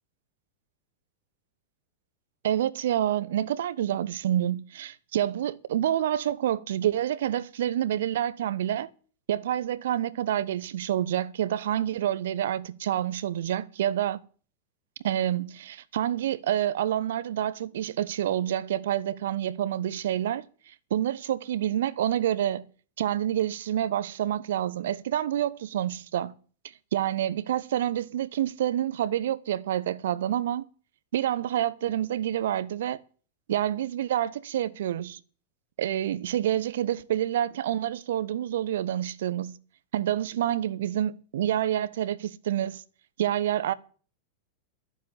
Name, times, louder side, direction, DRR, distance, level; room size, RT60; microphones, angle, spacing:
voice 1, 2.4-8.9 9.3-14.2 15.0-22.6 23.0-26.3 26.9-30.7 31.1-33.0 33.5-35.2 35.8-39.6 39.9-42.8 43.2-43.7, right 11 dB, 60° right, 0.9 m, -28 dB
12.5 x 7.2 x 10.0 m
figure-of-eight pair, 90°, 0 cm